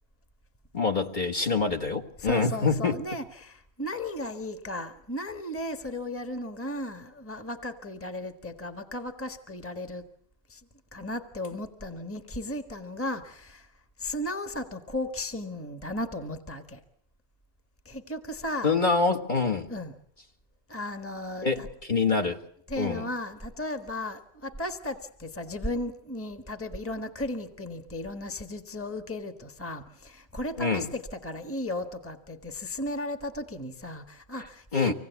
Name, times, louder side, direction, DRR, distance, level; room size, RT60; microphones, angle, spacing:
voice 1, 0.7-2.9 18.6-19.7 21.4-22.4 22.8-23.1 30.6-30.9 34.3-34.5 34.7-34.9, left 4 dB, 40° left, 3 dB, 1.7 m, -26 dB
voice 2, 2.2-10.0 10.5-10.6 10.9-13.7 14.0-16.8 17.8-18.7 19.7-19.9 20.7-21.7 22.7-34.9, left 1 dB, 10° left, 7 dB, 1.4 m, -35 dB
25.0 x 18.0 x 8.1 m, 0.69 s
omnidirectional pair, 1.2 m